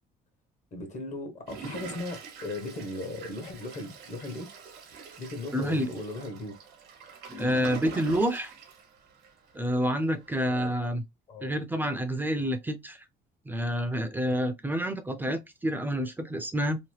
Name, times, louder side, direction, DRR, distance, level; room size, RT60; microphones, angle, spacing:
voice 1, 0.7-4.5 5.2-6.5 10.5-10.7 11.3-11.6, left 2 dB, 45° left, 1.1 m, -37 dB
Toilet flush, 1.5-9.5 10.0-10.1 10.3-10.4, right 6 dB, 75° right, 1.0 m, -44 dB
voice 2, 5.5-5.9 7.3-8.5 9.5-11.0 11.4-13.0 13.5-16.8, equal, 10° right, 0.5 m, -28 dB
2.9 x 2.1 x 3.2 m
cardioid pair, 110°, 17 cm